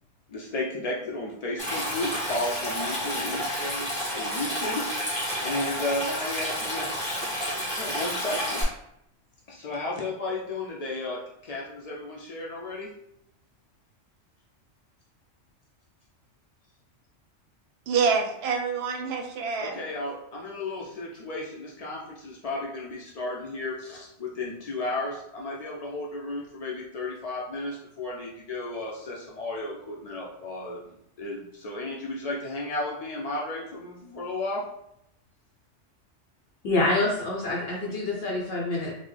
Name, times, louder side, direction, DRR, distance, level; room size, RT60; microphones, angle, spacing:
voice 1, 0.3-7.2 7.4-8.7 9.5-12.9 19.6-34.7, left 2 dB, 80° left, 0.3 m, -34 dB
Stream, 1.6-8.6, equal, 5° left, 1.4 m, -30 dB
voice 2, 17.9-19.9, right 5 dB, 65° right, 0.8 m, -26 dB
voice 3, 36.6-38.9, left 2 dB, 60° left, 0.8 m, -26 dB
3.9 x 2.1 x 3.2 m
omnidirectional pair, 1.2 m